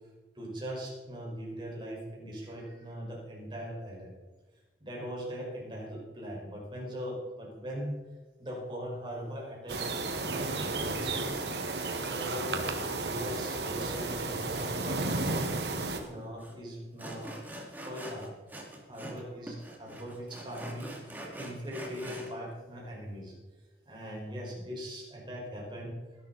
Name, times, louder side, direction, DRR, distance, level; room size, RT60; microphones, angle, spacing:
voice 1, 0.4-4.1 4.8-8.0 8.4-9.8 10.2-11.4 12.1-12.7 12.9-15.5 16.1-17.4 17.8-18.3 18.9-20.9 21.4-23.3 23.9-26.0, equal, 25° right, -3 dB, 5.2 m, -40 dB
sound 1, 9.7-16.0, right 3 dB, 75° right, 1.7 m, -33 dB
Sawing, 16.0-16.1 16.4-16.5 17.0-19.2 19.5-22.3, right 1 dB, 10° right, 2.7 m, -44 dB
19.0 x 11.5 x 4.2 m, 1.3 s
head